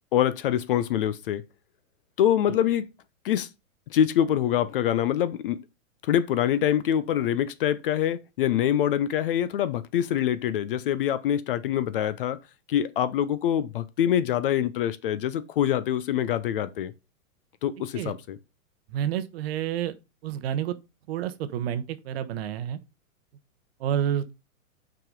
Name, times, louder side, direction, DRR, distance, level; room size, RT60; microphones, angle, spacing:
voice 1, 0.1-1.4 2.2-2.9 3.2-3.5 3.9-5.6 6.0-12.4 12.7-16.9 17.6-18.4, left 10 dB, 40° left, 0.6 m, -25 dB
voice 2, 18.9-20.0 20.2-20.8 21.1-22.8 23.8-24.3, right 10 dB, 45° right, 0.9 m, -29 dB
6.1 x 4.8 x 5.2 m
hypercardioid pair, 150°, 43 cm